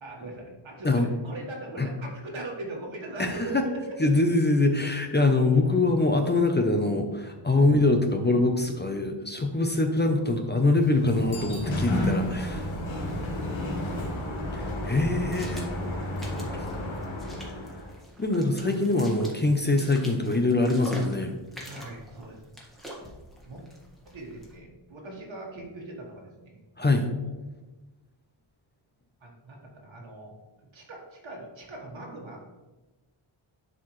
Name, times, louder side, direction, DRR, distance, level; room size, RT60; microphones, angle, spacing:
voice 1, 0.0-3.9 13.8-14.3 16.2-17.1 18.6-18.8 21.6-22.4 22.9-23.1 23.4-23.6 24.0-27.3 29.2-30.3 30.7-32.5, right 2 dB, 70° right, -2 dB, 1.6 m, -41 dB
voice 2, 3.2-3.7 4.0-12.7 14.5-15.7 18.2-21.4 26.8-27.1, left 2 dB, 20° left, 5 dB, 0.6 m, -24 dB
Sliding door, 10.6-18.0, left 1 dB, 70° left, 1.6 m, -32 dB
Bicycle bell, 11.2-12.5, left 1 dB, 25° right, 2.0 m, -47 dB
sound 1, 14.2-24.6, equal, ahead, 1.6 m, -45 dB
10.5 x 4.7 x 3.2 m, 1.1 s
wide cardioid pair, 150°, 49 cm